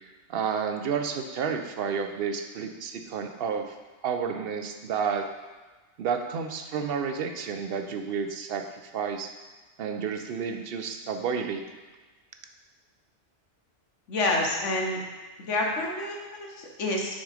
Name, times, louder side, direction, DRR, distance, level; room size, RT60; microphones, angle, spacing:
voice 1, 0.3-3.7 4.0-5.3 6.0-8.6 8.9-9.3 9.8-11.6, right 6 dB, 60° right, 6 dB, 0.7 m, -30 dB
voice 2, 14.1-15.0 15.4-17.1, left 2 dB, 85° left, 0 dB, 1.3 m, -28 dB
6.3 x 3.7 x 4.9 m, 1.3 s
omnidirectional pair, 1.2 m